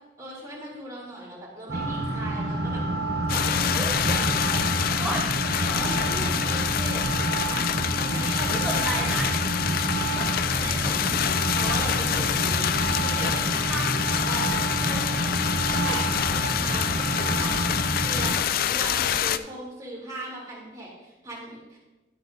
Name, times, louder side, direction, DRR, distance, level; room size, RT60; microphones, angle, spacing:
voice 1, 0.2-2.8 3.3-5.0 5.6-7.6 8.0-9.2 10.5-14.4 14.8-15.3 15.7-17.6 18.0-21.8, right 1 dB, 20° right, -6 dB, 3.3 m, -38 dB
sound 1, 1.7-18.4, right 1 dB, 65° right, 0.9 m, -28 dB
sound 2, 3.3-19.4, left 10 dB, 55° left, 0.3 m, -27 dB
voice 2, 5.0-5.5 5.8-6.1 6.6-6.7 8.5-9.3 10.1-10.9 13.7-14.9 15.8-16.0, right 1 dB, 5° right, -5 dB, 1.0 m, -35 dB
11.5 x 8.0 x 2.7 m, 1.1 s
head